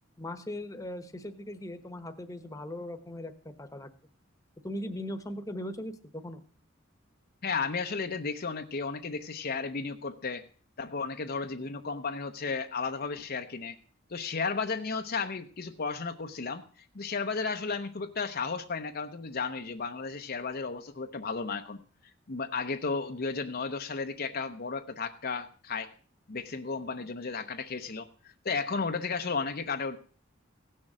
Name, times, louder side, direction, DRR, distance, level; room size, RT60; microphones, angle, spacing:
voice 1, 0.2-3.9 4.6-6.4, left 1 dB, 15° left, 8 dB, 1.2 m, -39 dB
voice 2, 7.4-10.4 10.8-13.8 14.1-21.8 22.3-25.9 26.3-28.1 28.4-30.0, left 4 dB, 50° left, 6 dB, 0.8 m, -34 dB
16.5 x 6.5 x 7.4 m, 0.43 s
head